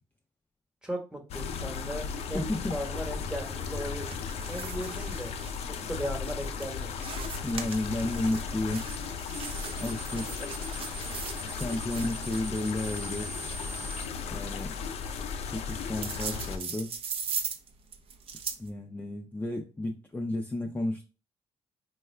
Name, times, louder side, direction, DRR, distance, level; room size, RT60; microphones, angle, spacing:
voice 1, 0.8-4.1 4.5-5.3 5.7-6.9, equal, 10° right, 4 dB, 1.1 m, -37 dB
sound 1, 1.3-16.6, left 6 dB, 75° left, 0.5 m, -36 dB
voice 2, 2.3-2.8 4.5-4.7 7.4-8.9 9.8-10.3 11.4-13.3 14.3-14.7 15.4-16.9 18.6-21.0, left 1 dB, 15° left, 2 dB, 0.5 m, -32 dB
sound 2, 3.4-18.7, right 6 dB, 60° right, 0.5 m, -41 dB
sound 3, 9.4-14.1, right 2 dB, 80° right, 0.9 m, -42 dB
4.6 x 2.2 x 3.2 m, 0.31 s
cardioid pair, 95°, 11 cm